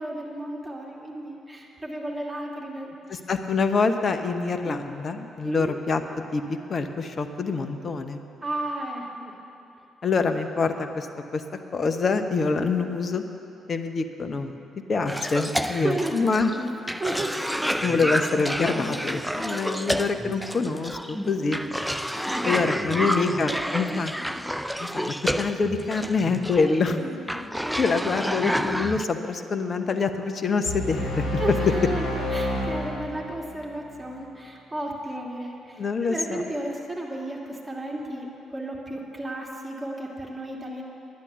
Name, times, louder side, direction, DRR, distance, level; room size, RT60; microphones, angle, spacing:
voice 1, 0.0-3.2 4.6-4.9 5.4-5.8 8.4-9.3 12.8-12.9 15.6-16.2 17.0-18.2 19.3-19.8 21.4-21.6 22.2-24.0 27.0-27.2 27.6-28.1 31.4-40.8, right 1 dB, 15° right, -2 dB, 2.5 m, -34 dB
voice 2, 3.1-6.0 6.3-8.2 10.0-11.1 11.3-11.4 11.7-13.2 13.7-14.6 14.9-16.5 17.8-21.6 22.4-24.1 24.8-27.0 27.8-31.3 35.8-36.4, left 4 dB, 45° left, 7 dB, 0.9 m, -26 dB
Cough, 15.1-29.0, equal, ahead, 0.5 m, -29 dB
sound 1, 30.6-34.0, left 1 dB, 60° left, 2.7 m, -29 dB
10.5 x 9.9 x 7.0 m, 2.7 s
hypercardioid pair, 45°, 0 cm